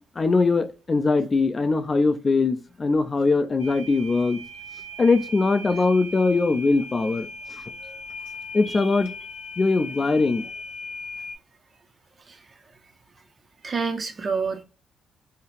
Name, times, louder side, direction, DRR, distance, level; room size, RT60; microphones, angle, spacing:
voice 1, 0.2-4.4 5.0-7.6 8.5-9.1 9.6-10.4, left 3 dB, 35° left, 0.4 m, -21 dB
sound 1, 3.6-11.3, left 1 dB, 90° left, 0.7 m, -39 dB
voice 2, 13.6-14.6, right 5 dB, 45° right, 0.6 m, -28 dB
2.8 x 2.3 x 3.1 m
hypercardioid pair, 45°, 0 cm